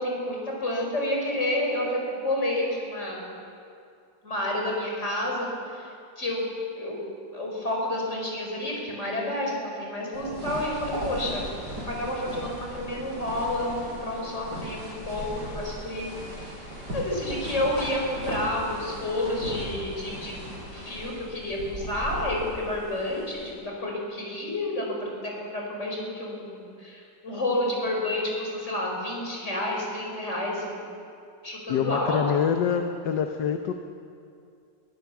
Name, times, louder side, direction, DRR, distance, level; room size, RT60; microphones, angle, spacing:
voice 1, 0.0-3.2 4.2-6.5 6.7-7.0 7.3-11.4 11.9-16.6 16.9-20.4 20.7-30.9 31.4-32.2, left 1 dB, 40° left, -1 dB, 5.2 m, -30 dB
sound 1, 10.1-23.5, equal, 65° right, 6.6 m, -37 dB
voice 2, 31.7-33.7, left 8 dB, 75° left, 6 dB, 1.5 m, -25 dB
22.0 x 16.0 x 7.2 m, 2.4 s
omnidirectional pair, 2.0 m